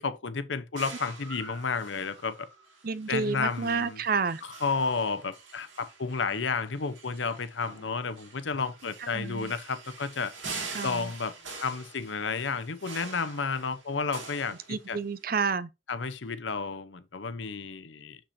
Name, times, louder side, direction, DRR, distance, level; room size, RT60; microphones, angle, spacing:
voice 1, 0.0-2.5 3.1-4.0 4.6-10.3 10.8-15.0 15.9-18.2, left 4 dB, 80° left, 0.8 m, -32 dB
sound 1, 0.8-15.2, right 4 dB, 90° right, 2.5 m, -45 dB
voice 2, 2.8-4.4 9.1-9.5 10.7-11.1 14.7-15.7, right 5 dB, 50° right, 0.5 m, -30 dB
6.8 x 5.9 x 2.7 m
head